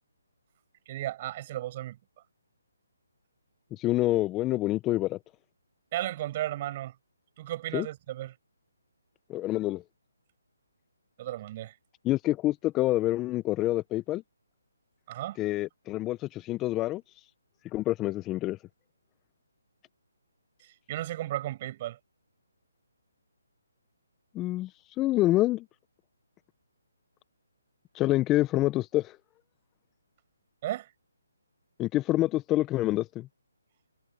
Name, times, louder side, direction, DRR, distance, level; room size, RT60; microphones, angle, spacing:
voice 1, 0.9-2.0 5.9-6.9 7.4-8.3 11.2-11.7 15.1-15.4 20.9-22.0 30.6-30.9, right 14 dB, 35° right, 6.0 m, -34 dB
voice 2, 3.7-5.2 7.7-7.9 9.3-9.8 12.0-14.2 15.4-17.0 17.7-18.6 24.3-24.7 25.0-25.6 27.9-29.2 31.8-33.3, left 16 dB, 15° left, 1.1 m, -27 dB
figure-of-eight pair, 145°, 0 cm